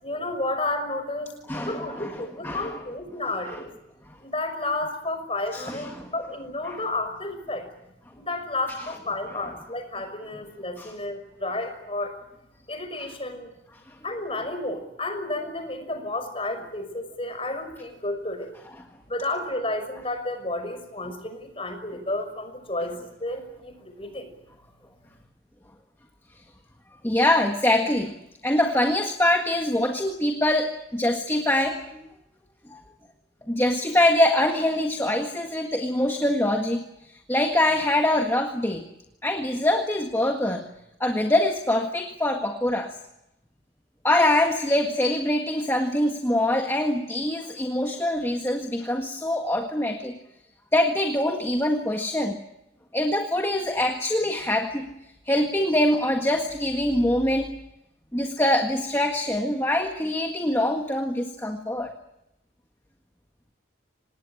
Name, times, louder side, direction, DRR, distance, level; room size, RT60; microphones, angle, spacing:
voice 1, 0.0-3.7 4.2-7.6 8.2-12.1 12.7-13.5 14.0-18.5 19.1-24.3, left 2 dB, 30° left, 7 dB, 5.9 m, -31 dB
voice 2, 1.5-2.8 5.5-6.1 6.7-6.8 9.3-9.4 10.8-10.9 27.0-28.1 28.4-32.1 32.7-32.8 33.4-36.8 37.1-38.9 39.2-40.6 41.0-42.9 44.0-50.2 50.7-52.4 52.9-54.9 55.2-57.5 58.1-61.9, left 1 dB, 15° left, 3 dB, 1.7 m, -24 dB
26.5 x 19.5 x 8.8 m, 0.86 s
head